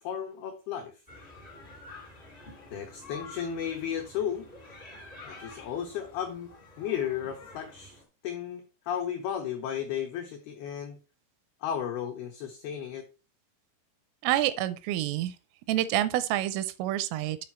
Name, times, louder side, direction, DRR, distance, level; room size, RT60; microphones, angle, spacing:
voice 1, 0.0-0.9 2.7-4.5 5.2-11.0 11.6-13.1, left 9 dB, 90° left, 2.2 m, -34 dB
sound 1, 1.1-8.0, left 3 dB, 60° left, 0.5 m, -49 dB
voice 2, 14.2-15.3 15.7-17.4, right 13 dB, 85° right, 3.1 m, -28 dB
8.6 x 4.7 x 4.4 m
omnidirectional pair, 5.9 m